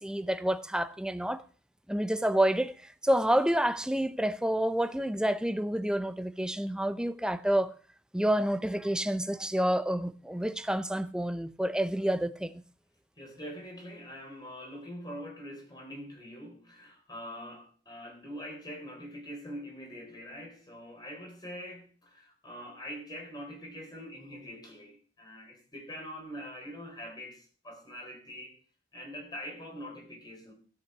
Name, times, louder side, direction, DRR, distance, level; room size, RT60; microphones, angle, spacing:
voice 1, 0.0-1.4 1.9-7.7 8.1-12.5, right 1 dB, 5° right, 0.6 m, -28 dB
voice 2, 13.2-28.6 28.9-30.5, equal, 25° left, 3.9 m, -44 dB
13.0 x 5.9 x 7.4 m
head